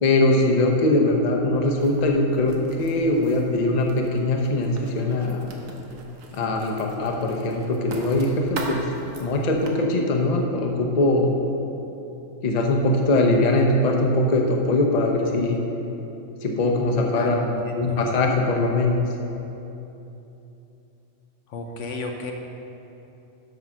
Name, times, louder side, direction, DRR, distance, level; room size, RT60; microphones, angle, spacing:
voice 1, 0.0-5.5 6.3-8.8 9.2-11.3 12.4-15.6 16.4-17.4 17.8-19.0, left 2 dB, 35° left, 1 dB, 0.8 m, -21 dB
Writing, 1.8-9.7, right 2 dB, 85° right, 1.4 m, -40 dB
voice 2, 17.2-18.0 21.5-22.3, left 2 dB, 70° left, 3 dB, 1.0 m, -32 dB
8.0 x 5.6 x 6.1 m, 3.0 s
omnidirectional pair, 1.4 m